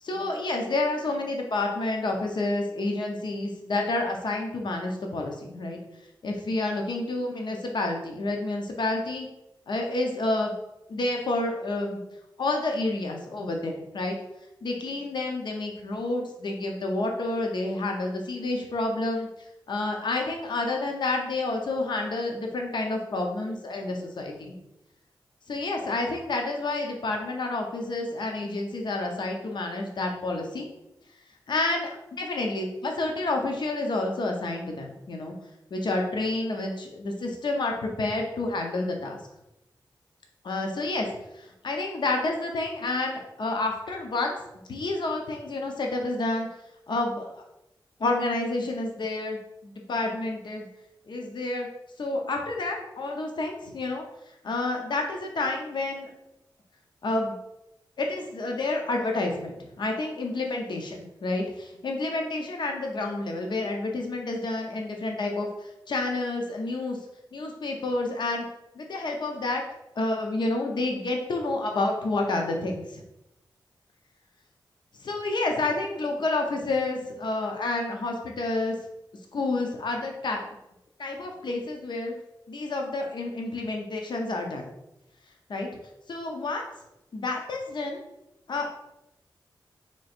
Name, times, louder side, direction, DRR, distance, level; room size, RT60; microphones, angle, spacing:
voice 1, 0.0-5.8 6.2-9.3 9.7-10.5 10.9-12.0 12.4-14.2 14.6-19.3 19.7-24.5 25.5-30.7 31.5-35.3 35.7-39.2 40.4-41.1 41.3-44.4 44.7-46.5 46.9-47.4 48.0-50.7 51.1-51.7 52.0-54.0 54.4-56.1 57.0-57.3 58.0-67.0 67.3-68.4 68.7-69.6 70.0-73.0 75.0-78.7 79.3-80.5 81.0-82.1 82.5-84.7 85.5-85.7 86.1-86.6 87.1-88.0 88.5-88.7, left 2 dB, 65° left, 2 dB, 0.7 m, -29 dB
3.1 x 2.4 x 4.2 m, 0.89 s
cardioid pair, 50°, 8 cm